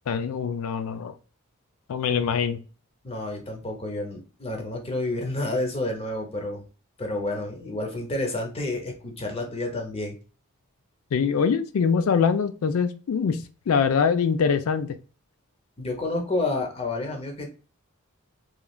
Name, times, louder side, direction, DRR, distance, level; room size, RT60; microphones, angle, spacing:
voice 1, 0.1-1.1 1.9-2.6 11.1-14.9, left 6 dB, 70° left, 10 dB, 0.4 m, -23 dB
voice 2, 3.0-6.6 7.0-10.2 15.8-17.5, left 2 dB, 25° left, 2 dB, 0.6 m, -30 dB
3.1 x 2.3 x 2.3 m, 0.35 s
head